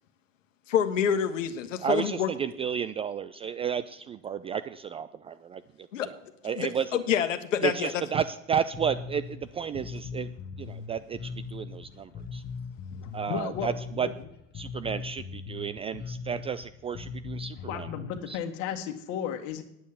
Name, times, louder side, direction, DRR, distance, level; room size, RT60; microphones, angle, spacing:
voice 1, 0.7-2.3 5.9-6.1 6.5-8.0, left 8 dB, 70° left, 7 dB, 1.4 m, -27 dB
voice 2, 1.8-5.6 6.4-7.0 7.6-10.3 10.6-12.4 13.1-14.1 14.6-17.9 18.3-18.4, right 7 dB, 15° right, 12 dB, 0.3 m, -32 dB
Bass guitar, 8.7-18.2, left 5 dB, 25° left, 1.2 m, -39 dB
voice 3, 12.9-14.3 17.6-19.6, left 8 dB, 50° left, 6 dB, 1.9 m, -35 dB
9.5 x 8.3 x 8.4 m, 0.84 s
figure-of-eight pair, 80°, 39 cm